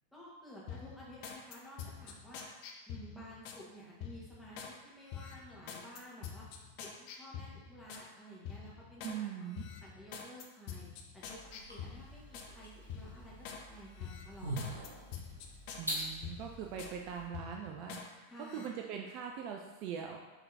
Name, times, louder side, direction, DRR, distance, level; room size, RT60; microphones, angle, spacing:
voice 1, 0.1-2.5 2.9-6.5 6.8-9.3 9.8-10.9 11.1-11.4 11.7-15.0 18.3-18.6, equal, 5° left, -7 dB, 1.5 m, -52 dB
sound 1, 0.7-3.6 4.0-4.7 5.1-8.1 8.5-9.2 9.5-12.5 12.9-13.6 14.0-17.0 17.3-18.1 18.4-18.7, left 7 dB, 45° left, 0.5 m, -47 dB
voice 2, 9.0-9.6 15.8-18.3 18.5-20.3, right 8 dB, 40° right, 2 dB, 0.4 m, -42 dB
sound 2, 11.2-17.3, right 1 dB, 85° right, 1.1 m, -44 dB
5.4 x 3.5 x 2.8 m, 1.2 s
figure-of-eight pair, 90°, 0 cm